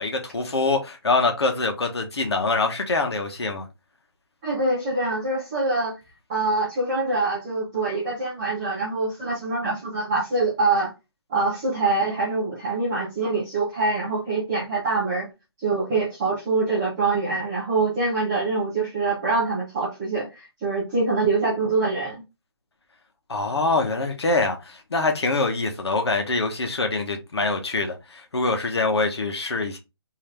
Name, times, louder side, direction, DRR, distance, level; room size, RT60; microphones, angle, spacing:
voice 1, 0.0-3.7 23.3-29.8, left 3 dB, 75° left, 1.1 m, -24 dB
voice 2, 4.4-5.9 6.3-10.9 11.3-15.3 15.6-22.2, right 3 dB, 5° right, 0.5 m, -24 dB
3.8 x 2.7 x 3.2 m
hypercardioid pair, 175°, 14 cm